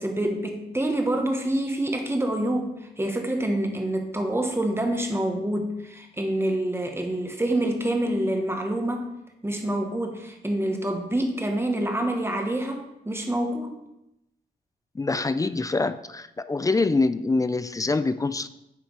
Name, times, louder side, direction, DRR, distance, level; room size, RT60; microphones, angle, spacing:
voice 1, 0.0-9.1 9.4-13.8, right 1 dB, 15° right, 4 dB, 1.3 m, -27 dB
voice 2, 14.9-18.5, left 3 dB, 20° left, 13 dB, 0.4 m, -25 dB
9.6 x 3.4 x 4.7 m, 0.87 s
cardioid pair, 70°, 18 cm